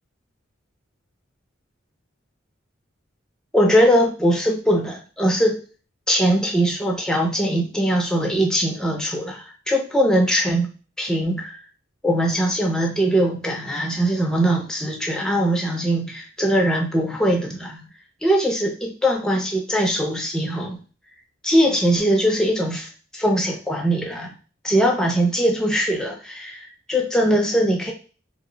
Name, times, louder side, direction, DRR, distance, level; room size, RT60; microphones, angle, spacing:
voice 1, 3.5-5.6 6.1-10.7 11.0-11.6 12.0-17.9 18.2-20.8 21.4-24.3 24.6-27.9, equal, 5° left, 0 dB, 0.4 m, -21 dB
2.5 x 2.0 x 3.7 m, 0.36 s
head